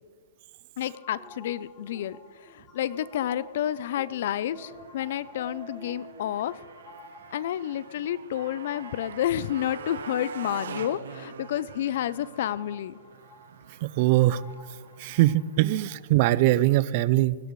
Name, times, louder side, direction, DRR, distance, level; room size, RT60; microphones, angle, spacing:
voice 1, 0.8-6.6 7.3-13.0, left 11 dB, 50° left, 18 dB, 0.5 m, -30 dB
sound 1, 0.8-15.6, left 4 dB, 20° left, 2.8 m, -53 dB
Speech, 1.2-1.3 1.8-2.1 2.4-2.5 2.9-3.5 3.9-4.1 4.5-4.9 5.2-6.2, right 2 dB, 5° right, 2.0 m, -48 dB
Motorcycle, 4.5-16.6, right 7 dB, 80° right, 1.0 m, -45 dB
voice 2, 13.8-14.4 15.0-17.4, right 15 dB, 35° right, 19 dB, 0.3 m, -22 dB
19.0 x 16.5 x 3.2 m, 1.5 s
hypercardioid pair, 170°, 0 cm